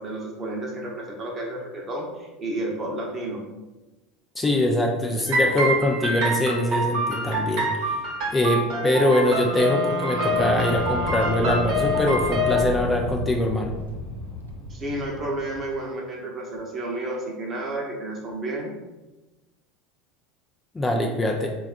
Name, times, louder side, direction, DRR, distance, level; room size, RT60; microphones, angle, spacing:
voice 1, 0.0-3.4 14.7-18.7, right 1 dB, 35° right, -1 dB, 0.8 m, -31 dB
voice 2, 4.4-7.7 8.3-13.7 20.7-21.5, left 1 dB, 20° left, 1 dB, 0.4 m, -23 dB
sound 1, 5.3-12.7, equal, 55° right, 1.0 m, -26 dB
sound 2, 9.4-13.3, right 3 dB, 85° right, 0.3 m, -32 dB
Explosion, 10.1-15.6, left 1 dB, 80° left, 0.8 m, -34 dB
3.3 x 2.3 x 2.4 m, 1.1 s
hypercardioid pair, 85°, 0 cm